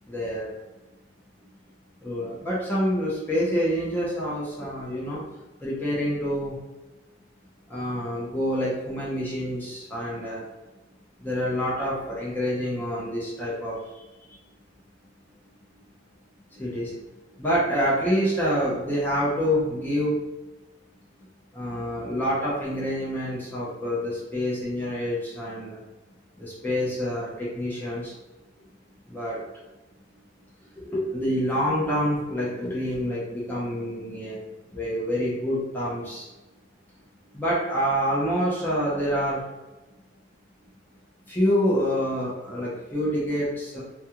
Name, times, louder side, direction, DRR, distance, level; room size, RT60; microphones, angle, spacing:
voice 1, 0.0-0.5 2.0-5.2 5.6-6.6 7.7-10.4 11.2-14.4 16.5-16.9 17.4-20.2 21.5-25.8 26.4-28.1 29.1-29.4 30.8-34.4 34.7-36.3 37.3-39.4 41.3-43.8, equal, 10° left, -7 dB, 0.6 m, -27 dB
2.3 x 2.2 x 2.9 m, 1.1 s
head